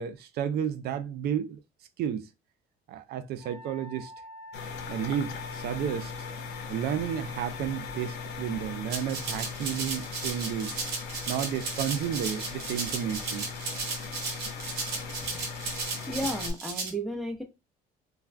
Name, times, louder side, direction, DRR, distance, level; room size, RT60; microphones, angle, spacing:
voice 1, 0.0-1.6 2.0-2.3 2.9-4.1 4.9-6.3 6.7-10.8 11.3-13.5, right 9 dB, 70° right, 0.4 m, -32 dB
Wind instrument woodwind instrument, 3.4-8.9, left 3 dB, 45° left, 0.8 m, -46 dB
sound 1, 4.5-16.5, left 6 dB, 80° left, 0.6 m, -39 dB
Rattle (instrument), 8.9-16.9, right 4 dB, 90° right, 1.0 m, -35 dB
voice 2, 16.1-17.4, equal, ahead, 0.8 m, -33 dB
2.3 x 2.3 x 3.3 m
cardioid pair, 110°, 17 cm